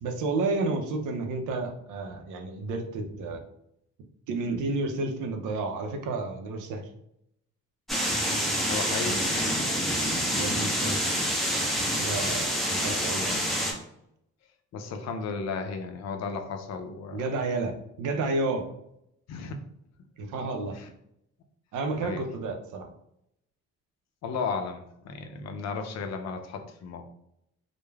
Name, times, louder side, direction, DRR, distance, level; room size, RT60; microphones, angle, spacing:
voice 1, 0.0-3.4 4.3-6.9 10.3-11.4 12.0-13.4 17.1-18.6 20.2-20.8 21.7-22.9, right 3 dB, 80° right, 5 dB, 0.5 m, -31 dB
sound 1, 7.9-13.7, equal, ahead, 0.7 m, -27 dB
voice 2, 8.6-9.5 12.5-12.7 14.7-17.2 19.3-19.6 20.7-20.9 22.0-22.2 24.2-27.0, left 5 dB, 60° left, 6 dB, 0.5 m, -34 dB
3.1 x 2.1 x 2.3 m, 0.77 s
cardioid pair, 90°, 30 cm